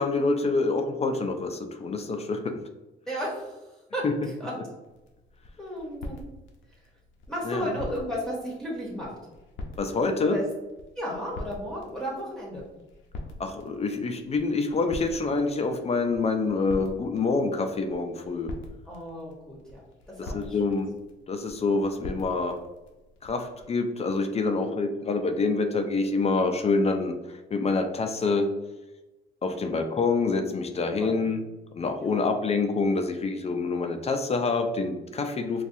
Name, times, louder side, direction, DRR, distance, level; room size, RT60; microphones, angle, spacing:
voice 1, 0.0-2.6 4.0-4.1 7.4-7.7 9.8-10.4 13.4-18.5 20.2-20.9 21.3-22.6 23.2-28.5 29.4-31.4 31.7-35.6, left 3 dB, 30° left, 6 dB, 0.4 m, -26 dB
voice 2, 3.1-3.6 3.9-4.0 4.4-4.5 5.6-6.2 7.3-9.2 10.2-10.4 11.0-12.6 18.8-19.8 20.1-20.6 24.4-24.7 29.5-29.7 31.0-31.3 32.0-32.3, equal, 5° left, -5 dB, 1.0 m, -34 dB
sound 1, 4.8-23.7, left 2 dB, 80° left, 0.6 m, -45 dB
4.0 x 2.3 x 2.6 m, 1.1 s
cardioid pair, 90°, 20 cm